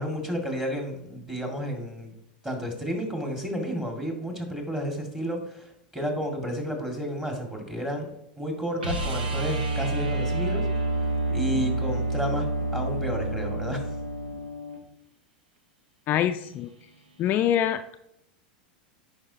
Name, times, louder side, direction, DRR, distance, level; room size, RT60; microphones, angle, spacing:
voice 1, 0.0-2.1 2.4-8.1 8.4-10.7 11.3-12.5 12.7-13.8, equal, 10° right, 2 dB, 1.9 m, -31 dB
sound 1, 8.8-14.8 17.3-17.4, right 2 dB, 85° right, 1.2 m, -28 dB
voice 2, 16.1-16.7 17.2-18.0, left 10 dB, 40° left, 8 dB, 0.3 m, -25 dB
9.9 x 4.8 x 2.8 m, 0.82 s
hypercardioid pair, 95°, 5 cm